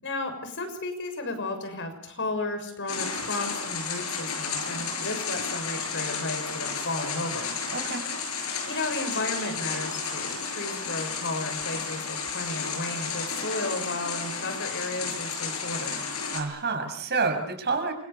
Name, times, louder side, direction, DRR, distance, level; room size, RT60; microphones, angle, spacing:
voice 1, 0.0-7.5 8.7-16.0, left 2 dB, 55° left, 7 dB, 6.6 m, -33 dB
sound 1, 2.9-16.4, left 5 dB, 70° left, 7.4 m, -32 dB
voice 2, 7.7-8.0 16.3-17.9, right 4 dB, 50° right, 7 dB, 6.5 m, -28 dB
29.0 x 26.5 x 7.0 m, 0.68 s
head